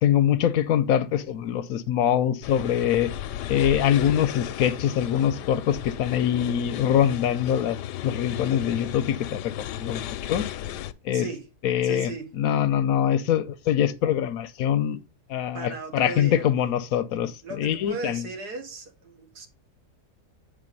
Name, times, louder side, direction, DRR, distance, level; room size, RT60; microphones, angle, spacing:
voice 1, 0.0-3.1 3.5-7.8 8.0-10.5 11.1-11.3 11.6-12.1 12.4-15.0 15.3-17.3 17.6-18.2, left 10 dB, 70° left, 0.9 m, -23 dB
sound 1, 2.4-10.9, left 12 dB, 85° left, 1.2 m, -34 dB
voice 2, 11.1-11.5 11.8-12.3 15.5-16.4 17.4-19.5, right 3 dB, 75° right, 1.8 m, -37 dB
9.1 x 3.5 x 5.2 m
omnidirectional pair, 1.7 m